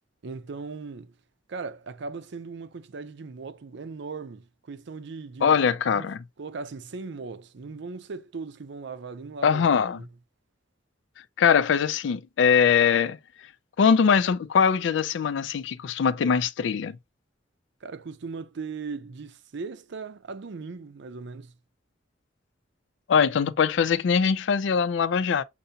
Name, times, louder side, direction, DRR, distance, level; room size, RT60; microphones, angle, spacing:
voice 1, 0.2-1.1 1.5-5.6 5.9-6.1 6.4-10.1 17.8-21.5, right 4 dB, 65° right, 0.5 m, -38 dB
voice 2, 5.4-6.2 9.4-10.0 11.4-13.2 13.8-17.0 23.1-25.4, left 6 dB, 65° left, 0.4 m, -22 dB
6.7 x 2.7 x 2.7 m
head